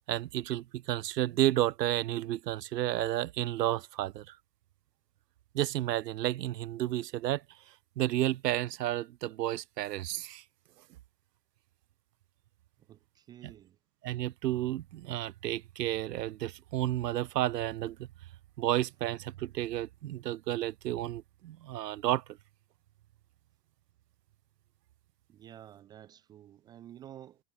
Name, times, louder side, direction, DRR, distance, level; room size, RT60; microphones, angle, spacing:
voice 1, 0.1-4.4 5.5-7.4 8.0-10.4 13.4-13.5 14.0-18.1 18.6-22.2, right 14 dB, 80° right, 1.0 m, -31 dB
voice 2, 12.9-13.7 25.3-27.4, right 11 dB, 10° right, 0.7 m, -51 dB
supercardioid pair, 170°, 48 cm